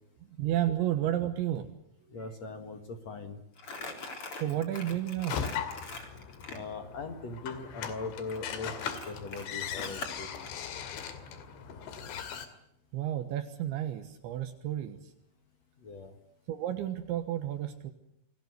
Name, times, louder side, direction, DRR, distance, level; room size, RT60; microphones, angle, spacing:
voice 1, 0.2-1.7 2.0-2.2 4.4-5.4 12.9-15.1 16.5-17.9, right 12 dB, 75° right, 7 dB, 3.6 m, -32 dB
voice 2, 2.1-3.4 6.5-8.7 9.1-10.5 15.8-16.1, left 3 dB, 50° left, 6 dB, 2.2 m, -40 dB
Crumpling crinkling, 3.6-6.6 8.3-10.5, left 3 dB, 30° left, 4.2 m, -42 dB
sound 1, 5.3-12.5, left 8 dB, 75° left, 4.6 m, -39 dB
28.5 x 21.0 x 8.1 m, 0.78 s
omnidirectional pair, 5.4 m